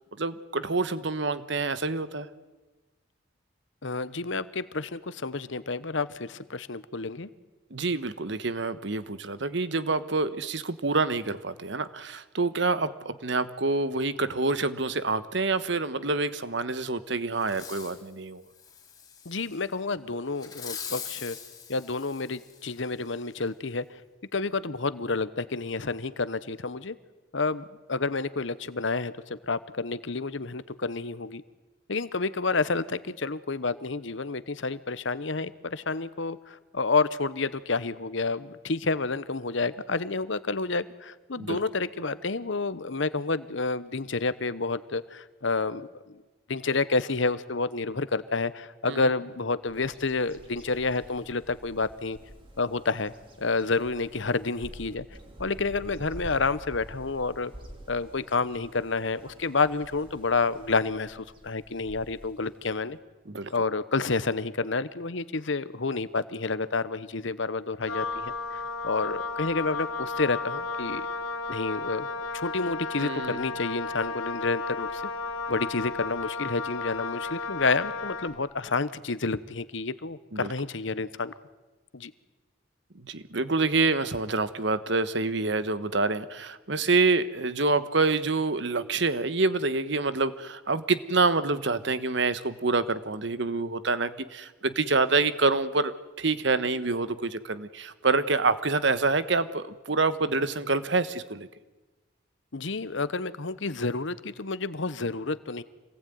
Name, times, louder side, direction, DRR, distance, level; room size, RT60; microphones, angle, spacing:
voice 1, 0.2-2.3 7.7-18.4 41.4-41.6 48.9-49.1 63.3-63.5 73.0-73.5 80.3-80.5 82.9-101.5, right 3 dB, 60° right, 13 dB, 1.2 m, -27 dB
voice 2, 3.8-7.3 19.2-21.4 21.7-23.8 24.3-26.9 27.3-31.4 31.9-45.9 46.5-52.2 52.6-53.1 53.4-55.0 55.4-57.5 57.9-63.0 63.5-68.3 68.8-71.1 71.5-72.1 72.3-75.0 75.5-81.3 81.9-82.1 102.5-105.6, left 3 dB, 65° left, 15 dB, 1.0 m, -29 dB
Fireworks, 17.4-18.0 18.5-19.6 20.4-22.8 23.3-23.4, left 7 dB, 20° left, 3.7 m, -42 dB
Bird vocalization bird call bird song, 49.7-62.9, right 1 dB, 25° right, 3.1 m, -48 dB
Wind instrument woodwind instrument, 67.8-78.4, left 4 dB, 90° left, 2.3 m, -34 dB
26.5 x 19.5 x 9.4 m, 1.2 s
head